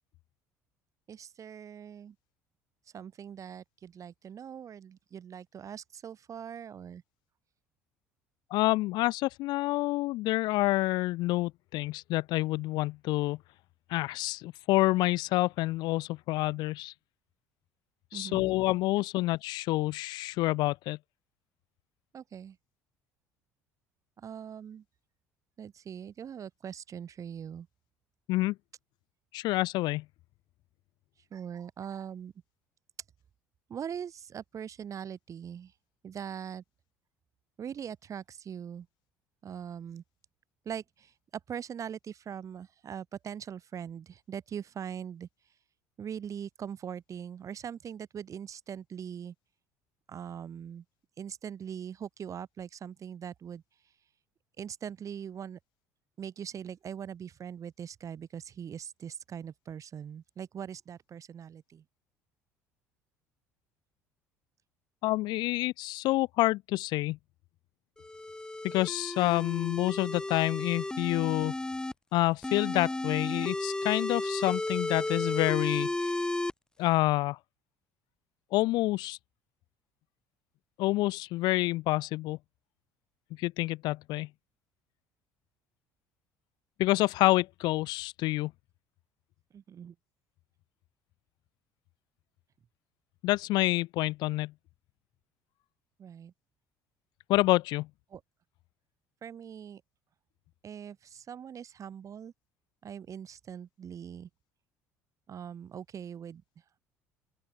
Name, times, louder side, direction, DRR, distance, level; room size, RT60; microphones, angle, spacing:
voice 1, 1.1-2.2 2.9-7.0 18.1-18.5 22.1-22.6 24.2-24.8 25.6-27.7 31.3-32.3 33.7-35.7 36.0-36.6 37.6-38.9 39.4-40.0 40.7-41.1 41.5-45.3 46.0-49.3 50.1-50.8 51.2-53.6 54.6-55.6 56.2-61.8 89.5-90.0 96.0-96.3 98.1-98.2 99.2-99.8 100.6-102.3 102.8-104.3 105.3-106.4, right 8 dB, 40° right, 2.1 m, -41 dB
voice 2, 8.5-13.4 13.9-16.9 18.1-21.0 28.3-28.6 29.3-30.0 65.0-67.2 68.6-71.5 72.1-75.9 76.8-77.4 78.5-79.2 80.8-82.4 83.4-84.3 86.8-88.5 93.2-94.5 97.3-97.9, left 19 dB, 60° left, 1.2 m, -28 dB
sound 1, 68.0-71.9 72.4-76.5, left 2 dB, 10° left, 0.8 m, -33 dB
open air
hypercardioid pair, 60°, 8 cm